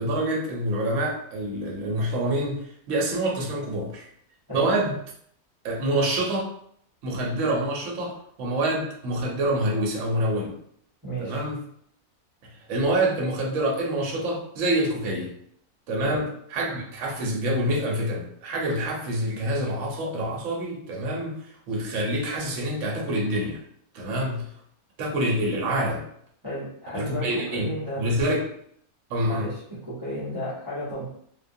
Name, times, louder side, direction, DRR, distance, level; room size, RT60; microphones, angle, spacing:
voice 1, 0.0-4.1 4.5-4.9 5.6-6.5 7.0-10.6 11.2-11.6 12.7-15.3 15.9-21.4 21.7-23.6 23.9-24.5 25.0-26.0 26.9-28.4 29.1-29.5, right 1 dB, 65° right, -1 dB, 1.0 m, -26 dB
voice 2, 11.0-11.4 16.0-16.1 24.0-24.2 26.4-28.0 29.3-31.0, equal, 20° right, -11 dB, 0.8 m, -33 dB
2.6 x 2.2 x 2.6 m, 0.67 s
omnidirectional pair, 1.6 m